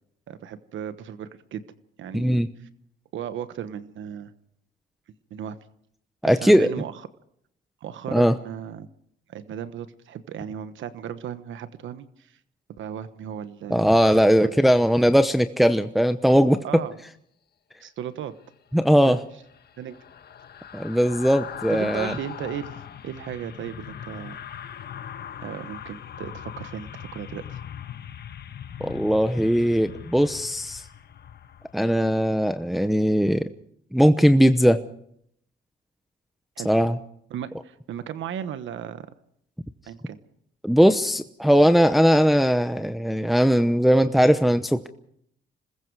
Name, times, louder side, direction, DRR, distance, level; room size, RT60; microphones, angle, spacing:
voice 1, 0.3-1.6 2.0-2.7 3.1-4.3 5.3-5.6 6.2-7.0 7.8-8.9 9.3-12.4 12.8-13.9 14.4-14.5 16.6-16.9 17.8-18.3 19.0-19.2 19.8-20.0 21.7-24.4 25.4-27.6 36.6-36.8 37.3-39.1 39.9-40.2, right 9 dB, 75° right, 12 dB, 1.2 m, -36 dB
voice 2, 2.1-2.5 6.2-6.7 8.1-8.4 13.7-16.8 18.7-19.2 20.7-22.1 28.8-30.8 31.7-33.5 33.9-34.8 36.6-37.0 40.6-44.9, equal, ahead, 9 dB, 0.9 m, -19 dB
sound 1, 18.8-32.1 32.5-32.7, left 9 dB, 55° left, 1.3 m, -40 dB
27.0 x 20.5 x 4.8 m, 0.70 s
cardioid pair, 90°, 20 cm